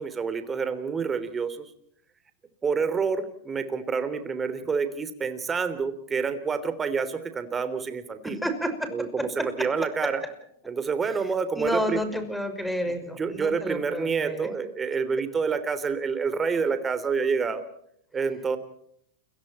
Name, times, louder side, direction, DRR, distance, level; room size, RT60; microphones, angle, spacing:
voice 1, 0.0-1.7 2.6-8.4 8.9-10.2 10.7-12.0 13.0-17.6 18.1-18.6, right 5 dB, 20° right, 11 dB, 3.4 m, -28 dB
voice 2, 8.2-8.9 9.2-9.7 10.0-10.1 11.5-14.5, equal, ahead, 8 dB, 5.8 m, -30 dB
29.5 x 23.5 x 4.5 m, 0.68 s
hypercardioid pair, 100°, 0 cm